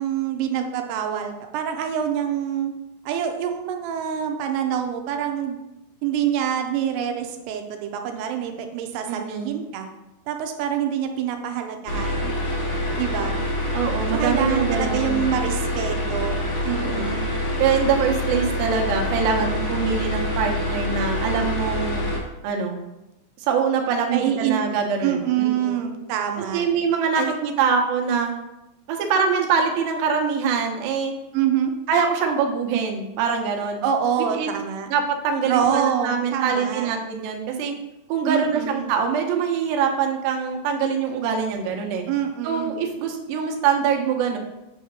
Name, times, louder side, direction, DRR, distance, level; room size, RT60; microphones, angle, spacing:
voice 1, 0.0-2.7 3.1-5.6 6.0-9.9 10.3-12.3 12.9-13.4 14.1-16.4 16.6-17.3 24.1-24.6 25.0-26.6 27.2-27.3 31.3-31.7 33.8-34.9 35.5-36.9 38.3-38.9 42.1-42.8, right 9 dB, 90° right, 4 dB, 2.7 m, -26 dB
voice 2, 9.1-9.6 13.7-15.2 16.7-17.1 17.6-22.1 22.4-22.8 23.4-25.8 26.5-28.3 28.9-31.1 31.9-33.8 34.4-34.5 34.9-37.7 38.1-42.0 42.4-44.4, right 6 dB, 75° right, 2 dB, 2.5 m, -24 dB
sound 1, 11.9-22.2, left 1 dB, 80° left, 3.7 m, -26 dB
8.0 x 2.8 x 6.1 m, 0.94 s
omnidirectional pair, 4.7 m